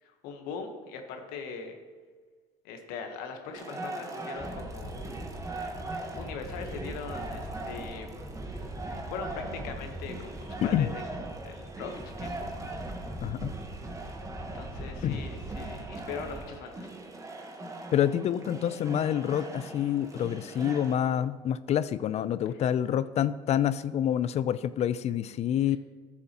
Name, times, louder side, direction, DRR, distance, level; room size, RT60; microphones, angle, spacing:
voice 1, 0.0-1.8 2.6-5.1 5.9-8.1 8.9-11.1 11.4-12.5 13.9-16.9, left 5 dB, 80° left, 5 dB, 1.2 m, -41 dB
sound 1, 3.5-20.9, right 2 dB, 20° right, 1.2 m, -41 dB
sound 2, 4.4-16.4, right 1 dB, 5° left, 1.6 m, -41 dB
voice 2, 13.2-13.6 15.0-15.2 17.9-25.8, left 10 dB, 45° left, 16 dB, 0.4 m, -27 dB
12.5 x 7.1 x 3.0 m, 1.5 s
supercardioid pair, 85°, 15 cm